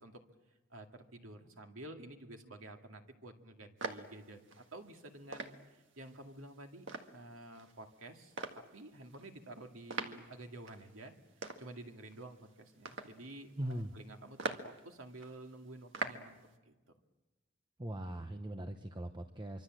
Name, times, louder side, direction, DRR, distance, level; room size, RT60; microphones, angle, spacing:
voice 1, 0.7-5.5 6.0-6.9 7.1-11.1 11.6-16.4 16.6-16.7, right 1 dB, 85° right, 4 dB, 2.3 m, -51 dB
sound 1, 3.8-16.5, right 3 dB, 65° right, 1.7 m, -45 dB
voice 2, 13.6-13.9 17.8-19.6, right 1 dB, 20° right, 7 dB, 0.9 m, -40 dB
25.0 x 24.5 x 7.7 m, 1.1 s
head